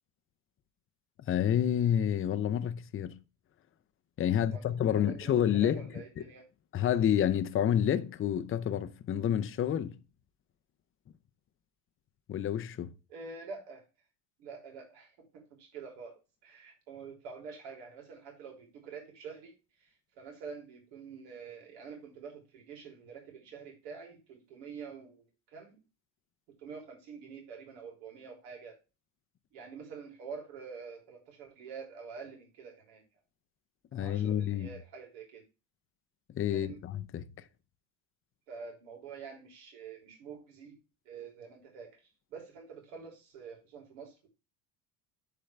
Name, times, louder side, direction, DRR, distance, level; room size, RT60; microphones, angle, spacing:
voice 1, 1.3-3.2 4.2-5.9 6.7-10.0 12.3-12.9 33.9-34.7 36.3-37.3, left 10 dB, 25° left, 0.6 m, -29 dB
voice 2, 4.3-6.5 13.1-13.8 14.4-25.8 26.5-28.8 29.5-33.0 33.9-35.4 36.5-36.8 38.5-40.8 41.1-44.3, right 5 dB, 80° right, 3.5 m, -47 dB
10.0 x 3.8 x 3.3 m
supercardioid pair, 110°, 47 cm